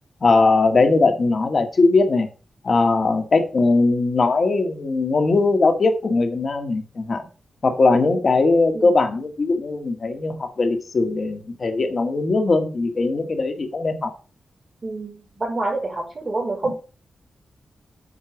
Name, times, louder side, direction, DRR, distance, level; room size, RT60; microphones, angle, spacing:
voice 1, 0.2-2.3 2.6-7.2 7.6-14.1 16.7-16.8, left 3 dB, 45° left, 6 dB, 1.8 m, -20 dB
voice 2, 14.8-16.7, right 2 dB, 35° right, -2 dB, 4.8 m, -27 dB
8.4 x 4.7 x 6.0 m, 0.36 s
wide cardioid pair, 115°, 0 cm